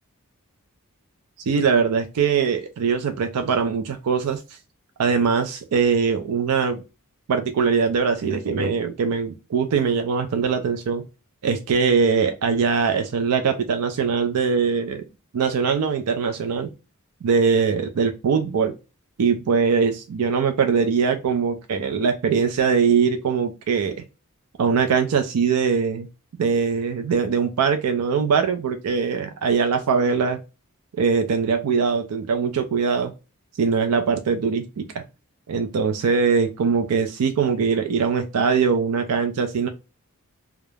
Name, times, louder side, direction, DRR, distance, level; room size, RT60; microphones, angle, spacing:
voice 1, 1.5-4.4 5.0-6.8 7.3-11.0 11.4-15.0 15.3-16.7 17.2-18.7 19.2-24.0 24.6-26.1 26.4-30.4 31.0-33.1 33.6-35.0 35.5-39.7, right 5 dB, 80° right, 6 dB, 0.4 m, -22 dB
2.3 x 2.0 x 3.2 m, 0.28 s
head